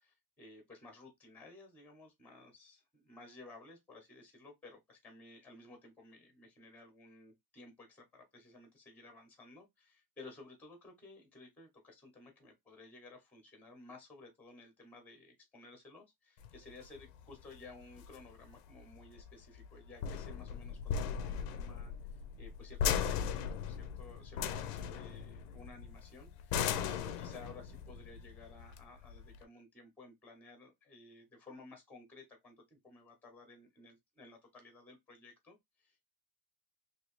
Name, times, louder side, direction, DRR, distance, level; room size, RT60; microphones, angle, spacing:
voice 1, 0.0-36.1, left 2 dB, 5° left, 0.9 m, -56 dB
sound 1, 16.4-29.4, left 7 dB, 45° left, 0.5 m, -38 dB
3.0 x 2.8 x 3.1 m
cardioid pair, 165°, 48 cm